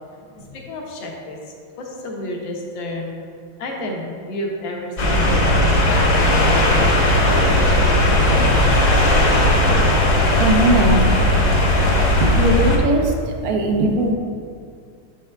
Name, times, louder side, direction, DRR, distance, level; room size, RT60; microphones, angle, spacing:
voice 1, 0.3-1.4 1.8-3.1 3.6-6.1 6.4-9.2 10.1-10.3, left 1 dB, 75° left, 0 dB, 1.6 m, -31 dB
sound 1, 5.0-12.8, left 1 dB, 45° left, 1.2 m, -16 dB
voice 2, 10.4-11.5 12.2-14.1, right 1 dB, 65° right, 3 dB, 0.9 m, -20 dB
7.1 x 6.8 x 2.2 m, 2.3 s
omnidirectional pair, 2.2 m